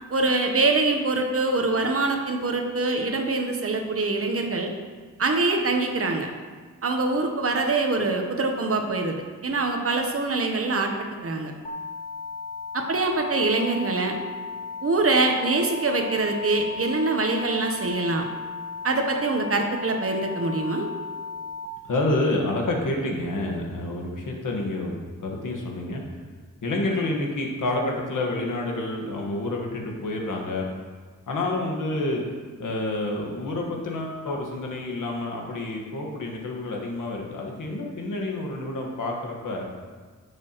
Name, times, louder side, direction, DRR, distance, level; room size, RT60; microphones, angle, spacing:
voice 1, 0.1-4.7 5.2-6.3 6.8-9.2 9.4-10.9 11.2-11.5 12.7-14.2 14.8-18.3 18.8-20.9, right 3 dB, 45° right, 3 dB, 0.9 m, -24 dB
sound 1, 11.6-21.7, left 5 dB, 25° left, 0.5 m, -36 dB
voice 2, 21.8-24.9 25.2-26.0 26.6-30.6 31.3-32.2 32.6-39.6, left 2 dB, 75° left, 0 dB, 1.5 m, -28 dB
10.5 x 6.9 x 3.0 m, 1.5 s
wide cardioid pair, 160°, 31 cm